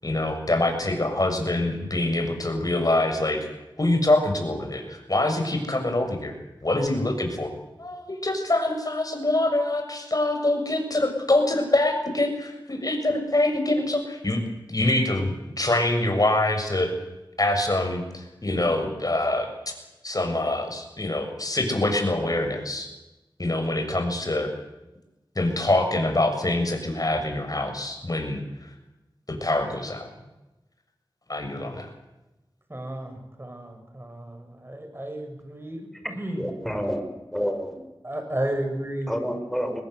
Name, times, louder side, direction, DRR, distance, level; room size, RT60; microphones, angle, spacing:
voice 1, 0.0-3.4 3.8-6.3 6.6-7.5 7.8-14.4 14.7-16.9 17.4-19.7 20.0-22.9 23.4-24.5 25.3-28.7 29.3-30.1 31.3-31.9, left 2 dB, 45° left, 5 dB, 6.8 m, -25 dB
voice 2, 32.7-35.8 36.0-36.4 38.0-39.2, right 1 dB, 25° right, 5 dB, 6.9 m, -32 dB
voice 3, 36.3-37.0 37.3-37.9 39.1-39.8, equal, 5° left, 6 dB, 5.9 m, -28 dB
23.5 x 20.5 x 8.2 m, 0.99 s
wide cardioid pair, 45°, 9 cm